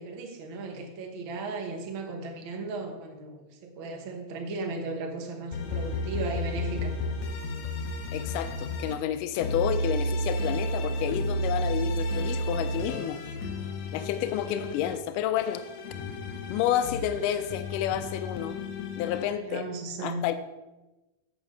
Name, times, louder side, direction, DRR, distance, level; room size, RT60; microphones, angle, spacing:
voice 1, 0.0-7.0 13.9-14.1 19.4-20.3, right 3 dB, 50° right, 2 dB, 1.7 m, -36 dB
sound 1, 5.5-8.9 9.4-14.9 15.4-19.2, left 1 dB, 65° left, 1.8 m, -32 dB
voice 2, 8.1-13.2 13.9-15.7 16.5-18.6 19.0-19.6 20.0-20.3, left 10 dB, 90° left, 10 dB, 2.2 m, -30 dB
8.7 x 6.2 x 6.3 m, 1.1 s
omnidirectional pair, 3.7 m